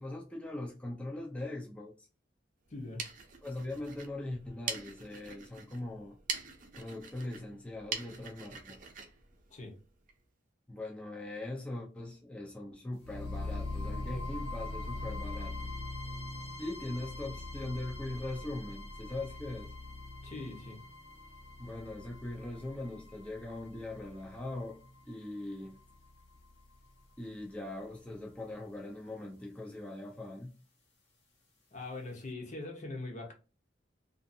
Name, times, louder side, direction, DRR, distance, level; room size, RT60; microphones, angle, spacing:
voice 1, 0.0-2.1 3.4-6.2 6.7-8.8 10.7-15.7 16.6-19.7 21.6-25.8 27.2-30.6, left 2 dB, 5° left, 0.4 m, -41 dB
voice 2, 2.7-3.1 9.5-9.8 20.2-20.8 31.7-33.3, left 2 dB, 45° left, 0.8 m, -42 dB
sound 1, 2.7-10.2, right 5 dB, 45° right, 0.6 m, -44 dB
sound 2, 13.0-27.0, left 2 dB, 65° left, 1.1 m, -42 dB
2.6 x 2.4 x 2.6 m
head